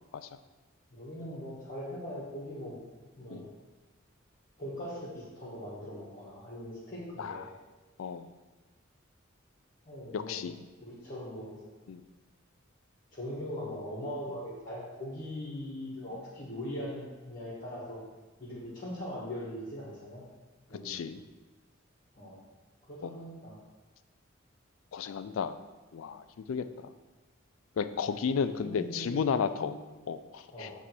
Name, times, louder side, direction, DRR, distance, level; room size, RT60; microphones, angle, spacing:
voice 1, 0.9-2.8 3.2-3.5 4.6-7.5 9.8-10.4 10.8-11.6 13.1-18.0 18.4-20.2 20.7-21.0 22.1-22.4 22.9-23.6 28.6-29.7 30.5-30.7, left 1 dB, 45° left, -7 dB, 1.5 m, -40 dB
voice 2, 7.2-7.5 8.0-8.3 10.1-10.5 11.9-12.0 20.8-21.2 23.0-23.1 24.9-25.6 25.9-26.9 27.8-29.8 30.1-30.7, left 6 dB, 90° left, 11 dB, 0.4 m, -33 dB
7.3 x 3.4 x 4.5 m, 1.2 s
head